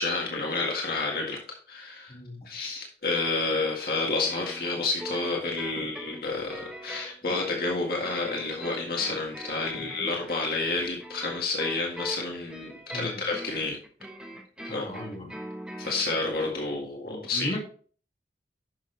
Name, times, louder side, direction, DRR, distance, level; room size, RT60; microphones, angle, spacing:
voice 1, 0.0-2.1 2.5-13.8 14.6-14.9 15.8-17.6, left 3 dB, 55° left, -1 dB, 1.8 m, -30 dB
voice 2, 2.1-2.5 5.8-5.9 9.7-9.9 12.9-13.3 14.7-15.4 17.1-17.6, left 1 dB, 35° left, -1 dB, 2.2 m, -37 dB
sound 1, 4.2-16.2, right 1 dB, 5° right, 1.3 m, -42 dB
10.5 x 6.5 x 3.3 m, 0.43 s
head